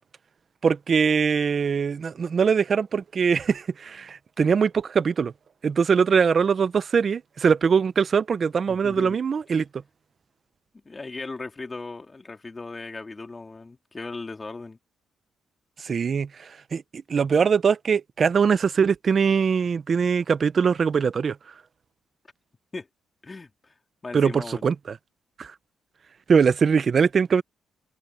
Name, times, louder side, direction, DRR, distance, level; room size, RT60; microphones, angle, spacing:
voice 1, 0.6-5.3 5.6-9.7 15.8-21.5 24.1-25.0 25.4-25.5 26.3-27.4, right 6 dB, 45° right, 0.8 m, -22 dB
voice 2, 8.7-9.2 10.8-14.8 22.7-22.9 23.2-23.8 24.0-24.7, left 3 dB, 25° left, 3.2 m, -37 dB
cardioid pair, 90°, 0 cm